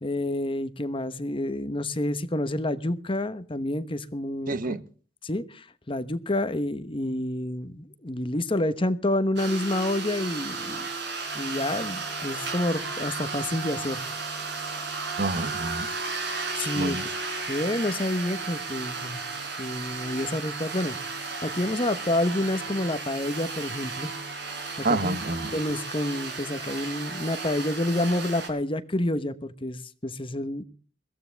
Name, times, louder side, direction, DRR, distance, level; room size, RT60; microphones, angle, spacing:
voice 1, 0.0-4.8 5.2-10.9 11.3-14.0 16.5-17.0 17.5-19.2 19.6-24.1 24.8-25.2 25.5-30.6, left 1 dB, 30° left, 1.0 m, -29 dB
voice 2, 4.5-4.8 15.2-15.9 16.8-17.0 24.8-25.5, right 2 dB, 50° right, 1.0 m, -28 dB
sound 1, 9.4-28.5, right 4 dB, 70° right, 4.5 m, -34 dB
21.5 x 15.5 x 3.4 m
head